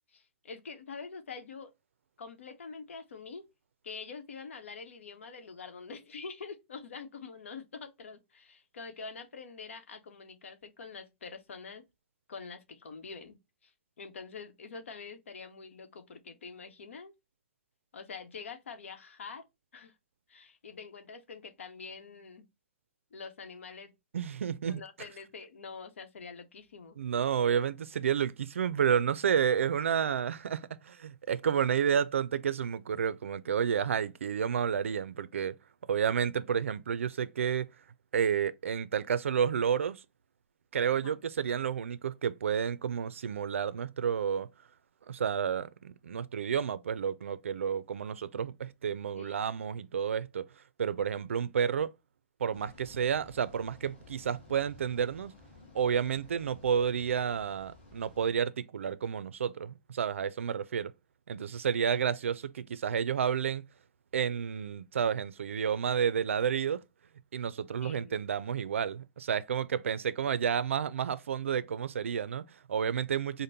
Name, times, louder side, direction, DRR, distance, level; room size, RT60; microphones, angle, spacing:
voice 1, 0.1-1.7 2.2-3.4 3.8-11.8 12.3-17.1 17.9-19.5 19.7-19.9 20.3-22.5 23.1-23.9 24.7-27.0 41.0-41.2 49.2-49.5 67.8-68.2, left 5 dB, 80° left, 1.0 m, -45 dB
voice 2, 24.1-24.8 27.0-35.6 35.9-37.7 38.1-40.0 40.7-44.5 45.1-50.5 50.8-51.9 52.4-55.3 55.7-60.9 61.3-63.6 64.1-66.8 67.3-73.4, right 7 dB, 90° right, 0.4 m, -30 dB
sound 1, 52.5-58.3, left 3 dB, 25° left, 2.0 m, -56 dB
5.1 x 2.1 x 2.7 m
hypercardioid pair, 175°, 7 cm